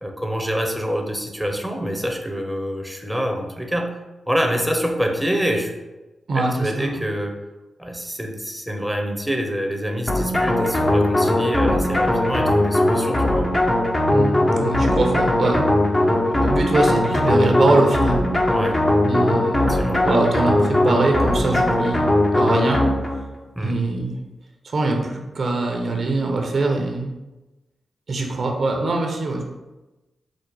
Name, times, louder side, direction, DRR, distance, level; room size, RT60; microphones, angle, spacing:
voice 1, 0.0-4.0 4.3-5.8 6.3-7.4 7.8-13.5 18.5-18.8 19.6-20.1 23.6-23.8, equal, 5° right, 2 dB, 0.8 m, -26 dB
voice 2, 6.3-7.1 14.1-15.9 16.3-18.3 19.0-19.8 20.0-22.0 22.3-22.8 23.6-24.2 24.6-27.1 28.1-29.4, right 2 dB, 65° right, 2 dB, 0.8 m, -22 dB
sound 1, 10.1-23.3, left 1 dB, 30° left, 0.8 m, -19 dB
5.1 x 2.1 x 4.6 m, 1.1 s
supercardioid pair, 45°, 0 cm